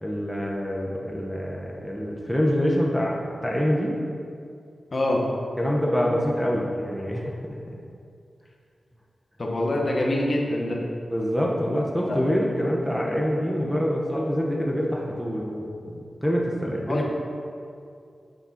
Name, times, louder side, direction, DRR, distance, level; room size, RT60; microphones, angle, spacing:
voice 1, 0.0-4.0 5.6-7.4 7.7-7.8 11.1-17.2, equal, ahead, -2 dB, 0.9 m, -26 dB
voice 2, 4.9-5.2 9.4-10.8 12.1-12.2 16.9-17.0, left 1 dB, 40° left, -1 dB, 1.3 m, -25 dB
7.3 x 6.5 x 5.8 m, 2.4 s
wide cardioid pair, 130°, 0 cm